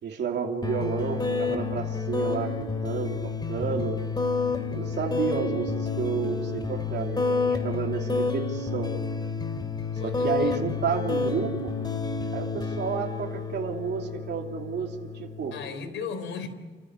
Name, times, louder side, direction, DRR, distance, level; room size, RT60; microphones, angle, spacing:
voice 1, 0.0-4.0 4.7-8.9 10.0-11.7 12.3-15.5, right 6 dB, 60° right, 1 dB, 3.0 m, -31 dB
sound 1, 0.6-15.7, left 4 dB, 20° left, 2.6 m, -30 dB
voice 2, 9.9-10.6 15.5-16.5, left 6 dB, 80° left, 7 dB, 3.9 m, -36 dB
30.0 x 15.0 x 9.7 m, 1.3 s
cardioid pair, 115°, 20 cm